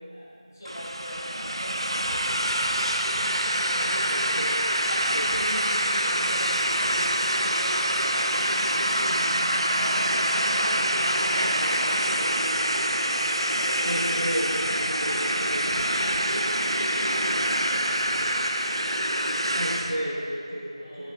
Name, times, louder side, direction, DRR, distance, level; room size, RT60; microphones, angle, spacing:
voice 1, 0.1-9.1 9.7-13.0 13.6-14.1 14.5-18.4 20.7-21.1, equal, 25° left, -12 dB, 1.4 m, -41 dB
sound 1, 0.6-20.0, right 1 dB, 55° right, 0.4 m, -25 dB
voice 2, 4.1-4.6 5.1-5.3 13.8-15.6 19.5-21.1, equal, 85° right, -8 dB, 1.1 m, -32 dB
10.5 x 4.0 x 3.1 m, 2.4 s
figure-of-eight pair, 180°, 3 cm